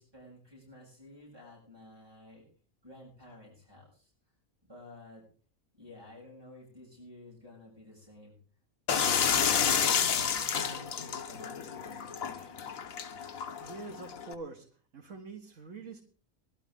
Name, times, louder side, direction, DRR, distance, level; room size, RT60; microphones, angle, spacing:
voice 1, 0.0-2.4 2.8-4.1 4.6-5.2 5.7-8.4 10.1-12.7, left 1 dB, 20° right, -5 dB, 6.9 m, -53 dB
sound 1, 8.9-14.3, left 7 dB, 85° left, 1.4 m, -30 dB
voice 2, 13.6-14.7 14.9-16.0, right 3 dB, 70° right, 0 dB, 2.0 m, -44 dB
19.5 x 12.0 x 3.7 m, 0.44 s
omnidirectional pair, 1.4 m